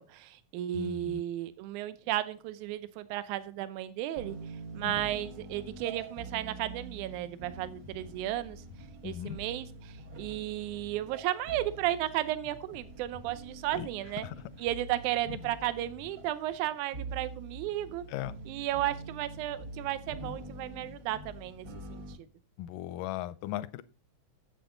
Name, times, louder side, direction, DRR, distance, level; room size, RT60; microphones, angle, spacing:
voice 1, 0.0-4.4 4.7-8.6 9.0-14.3 14.6-18.0 18.5-22.0, right 13 dB, 80° right, 2.1 m, -34 dB
voice 2, 0.7-1.2 4.8-5.0 9.0-9.4 13.7-13.9 14.2-14.4 15.3-15.4 18.1-18.3 22.6-23.8, left 14 dB, 85° left, 2.1 m, -37 dB
sound 1, 4.2-22.1, right 2 dB, 45° right, 1.6 m, -45 dB
9.1 x 8.1 x 3.8 m
omnidirectional pair, 3.7 m